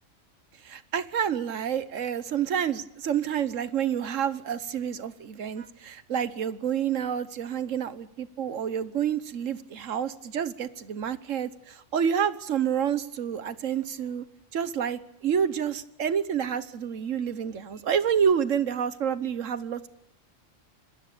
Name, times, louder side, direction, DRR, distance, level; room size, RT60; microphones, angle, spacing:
voice 1, 0.6-14.2 14.5-19.9, right 8 dB, 85° right, 14 dB, 1.4 m, -28 dB
26.0 x 19.5 x 6.7 m, 0.73 s
omnidirectional pair, 1.3 m